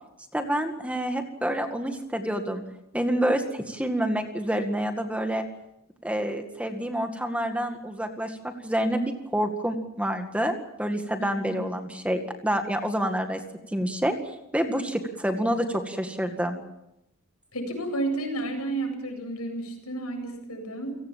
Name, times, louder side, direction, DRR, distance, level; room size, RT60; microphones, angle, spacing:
voice 1, 0.3-2.6 2.9-5.4 6.0-13.4 13.7-14.2 14.5-16.6, equal, 5° right, 6 dB, 2.0 m, -28 dB
voice 2, 11.2-11.6 17.5-21.0, right 2 dB, 85° left, 5 dB, 7.9 m, -31 dB
30.0 x 18.0 x 7.5 m, 0.84 s
head